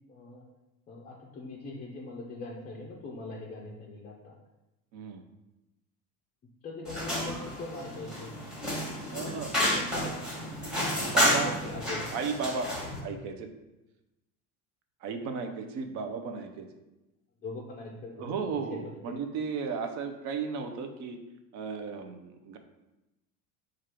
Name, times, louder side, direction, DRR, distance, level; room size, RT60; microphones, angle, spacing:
voice 1, 0.1-0.5 0.9-4.4 6.6-8.4 9.0-10.3 11.2-12.1 17.4-18.3 18.7-18.9, left 2 dB, 20° left, -2 dB, 0.4 m, -42 dB
voice 2, 4.9-5.2 9.1-9.5 11.0-11.6 12.1-12.7 13.0-13.5 15.0-16.7 18.2-21.2 21.5-22.6, right 5 dB, 45° right, 6 dB, 0.6 m, -34 dB
sound 1, 6.8-13.0, equal, ahead, 1.1 m, -30 dB
4.4 x 2.5 x 4.7 m, 0.98 s
supercardioid pair, 140°, 40 cm